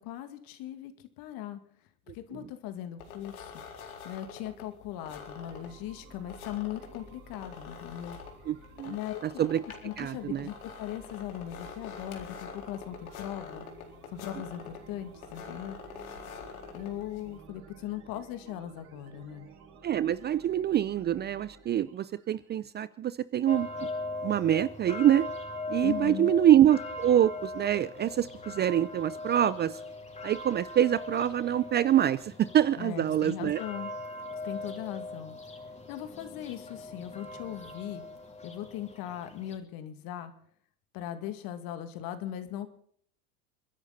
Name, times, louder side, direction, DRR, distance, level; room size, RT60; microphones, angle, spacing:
voice 1, 0.0-1.6 2.1-3.6 4.0-8.2 8.9-9.2 9.8-13.7 14.1-15.8 16.7-19.5 25.8-26.3 32.8-33.9 34.4-35.3 35.9-38.0 38.4-40.3 40.9-42.7, left 11 dB, 50° left, 9 dB, 2.5 m, -39 dB
sound 1, 3.0-17.4, left 6 dB, 75° left, 4.1 m, -46 dB
sound 2, 4.9-22.5, right 5 dB, 40° right, 6.7 m, -54 dB
voice 2, 8.5-8.9 9.4-9.6 10.0-10.5 19.8-23.9 24.2-25.3 25.7-29.8 30.2-33.6, right 11 dB, 25° right, 17 dB, 0.5 m, -25 dB
sound 3, 23.5-39.6, left 2 dB, 15° left, 3.9 m, -40 dB
29.5 x 10.5 x 4.2 m, 0.63 s
hypercardioid pair, 95°, 43 cm